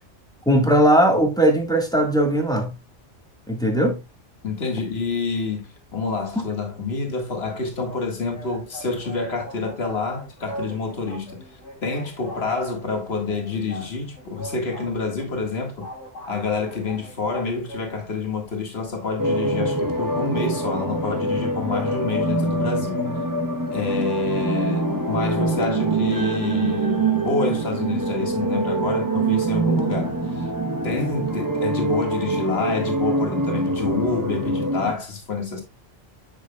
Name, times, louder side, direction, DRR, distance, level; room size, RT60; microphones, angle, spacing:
voice 1, 0.4-2.7 3.5-4.0, right 1 dB, 5° left, 1.5 m, -18 dB
voice 2, 4.4-11.4 11.8-15.8 16.3-23.0 23.7-30.5 30.8-35.6, left 4 dB, 55° left, 2.1 m, -27 dB
sound 1, 7.4-17.8, right 1 dB, 85° left, 3.2 m, -41 dB
sound 2, 19.2-34.9, right 2 dB, 20° right, 0.9 m, -24 dB
9.2 x 6.3 x 2.3 m
omnidirectional pair, 1.2 m